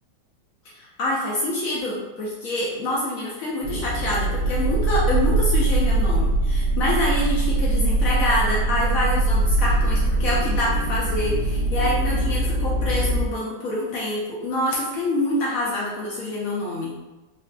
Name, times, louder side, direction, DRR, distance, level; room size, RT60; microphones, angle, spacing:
voice 1, 0.7-16.9, left 1 dB, 75° left, -4 dB, 0.8 m, -26 dB
sound 1, 3.6-13.3, right 2 dB, 70° right, 1.1 m, -22 dB
3.9 x 2.4 x 2.2 m, 1.1 s
omnidirectional pair, 2.0 m